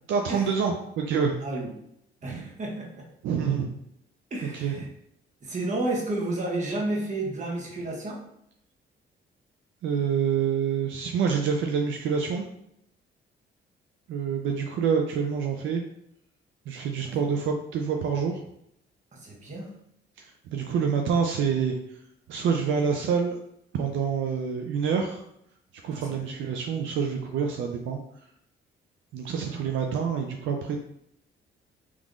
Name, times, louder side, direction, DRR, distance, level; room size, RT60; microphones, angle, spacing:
voice 1, 0.1-1.4 2.3-2.5 3.2-3.7 4.5-4.8 9.8-12.5 14.1-15.8 16.7-18.4 20.2-21.7 22.3-23.4 23.7-25.2 25.8-28.0 29.1-30.8, right 6 dB, 75° right, 3 dB, 0.4 m, -27 dB
voice 2, 1.4-1.7 2.2-3.1 4.3-4.9 5.4-8.2 17.0-17.1 19.1-19.7 25.9-26.4 29.5-29.6, right 2 dB, 35° right, -2 dB, 1.1 m, -31 dB
3.6 x 3.0 x 2.5 m, 0.74 s
cardioid pair, 90°, 20 cm